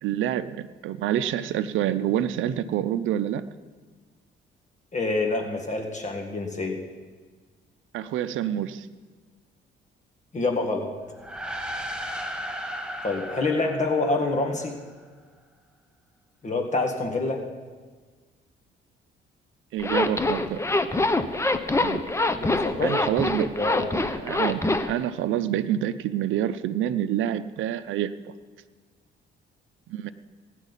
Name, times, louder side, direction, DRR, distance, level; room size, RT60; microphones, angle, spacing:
voice 1, 0.0-3.4 7.9-8.9 19.7-20.6 21.8-22.1 22.8-23.6 24.0-28.3 29.9-30.1, right 11 dB, 80° right, 11 dB, 0.6 m, -27 dB
voice 2, 4.9-6.8 10.3-10.9 13.0-14.8 16.4-17.4 22.3-23.1 23.6-23.8, left 3 dB, 35° left, 2 dB, 1.8 m, -26 dB
sound 1, 11.1-14.8, equal, 5° right, 1.4 m, -35 dB
Zipper (clothing), 19.8-24.9, left 2 dB, 15° left, 0.8 m, -24 dB
17.5 x 10.0 x 4.1 m, 1.4 s
cardioid pair, 90°, 20 cm